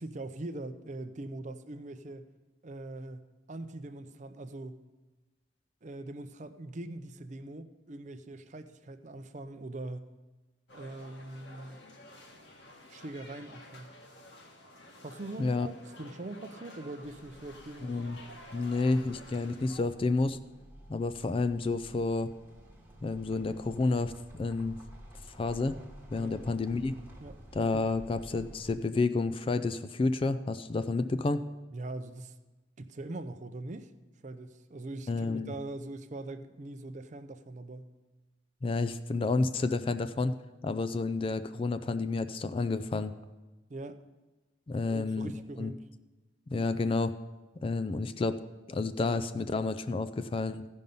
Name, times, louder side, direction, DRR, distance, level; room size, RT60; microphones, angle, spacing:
voice 1, 0.0-2.3 2.6-4.8 5.8-10.1 10.7-11.8 12.9-13.9 15.0-18.0 26.2-26.4 27.2-27.4 31.7-32.3 32.8-33.9 34.2-37.9 43.7-44.0 44.9-45.8, right 2 dB, 40° right, 0.5 m, -42 dB
sound 1, 10.7-19.8, left 1 dB, 60° left, 1.7 m, -51 dB
sound 2, 17.0-28.8, equal, 15° right, 1.3 m, -52 dB
voice 2, 17.8-18.2 18.5-20.4 20.9-22.3 23.0-24.8 25.3-25.7 26.1-26.9 27.5-31.4 35.1-35.5 38.6-40.3 40.6-43.1 44.7-45.3 45.6-45.7 46.5-47.2 47.6-48.4 48.7-50.7, left 3 dB, 30° left, 0.3 m, -30 dB
15.0 x 5.3 x 5.4 m
head